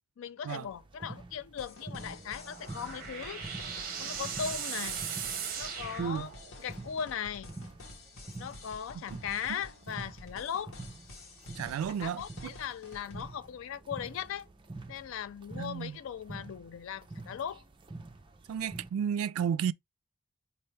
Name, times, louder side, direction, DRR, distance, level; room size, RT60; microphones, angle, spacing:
voice 1, 0.2-5.0 5.6-6.3 6.6-7.5 8.4-10.8 12.0-14.5 14.9-17.6, left 8 dB, 70° left, 0.3 m, -38 dB
sound 1, 0.7-18.9, right 2 dB, 25° right, 0.5 m, -47 dB
sound 2, 1.6-13.3, left 2 dB, 90° left, 1.1 m, -50 dB
sound 3, 2.2-6.7, right 7 dB, 40° right, 0.8 m, -38 dB
voice 2, 6.0-6.3 11.6-12.5 15.6-16.0 18.5-19.7, right 8 dB, 90° right, 0.3 m, -32 dB
4.4 x 2.5 x 3.1 m
head